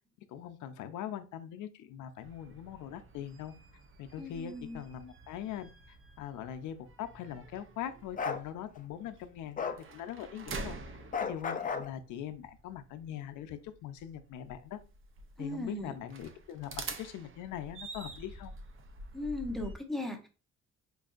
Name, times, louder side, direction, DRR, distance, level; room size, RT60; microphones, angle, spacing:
voice 1, 0.3-3.5 4.0-10.8 11.2-14.8 15.4-18.5, left 10 dB, 85° left, 9 dB, 0.5 m, -42 dB
sound 1, 2.2-19.7, right 3 dB, 45° right, 0.6 m, -48 dB
voice 2, 4.2-4.8 15.4-15.9 19.1-20.3, left 1 dB, ahead, 4 dB, 0.8 m, -37 dB
Bark, 8.2-8.4 9.6-9.8 11.1-11.9, left 5 dB, 30° left, 0.4 m, -33 dB
4.6 x 2.5 x 2.4 m, 0.32 s
cardioid pair, 90°, 30 cm